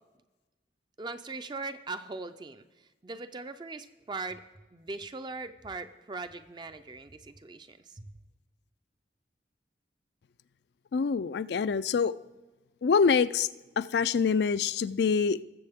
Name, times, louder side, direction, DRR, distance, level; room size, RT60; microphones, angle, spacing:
voice 1, 1.0-2.6 3.0-4.4 4.7-8.1, right 3 dB, 25° right, 0.4 m, -40 dB
voice 2, 10.9-12.1 12.8-13.5 13.8-15.4, left 5 dB, 65° left, 0.4 m, -25 dB
20.0 x 7.6 x 3.5 m
head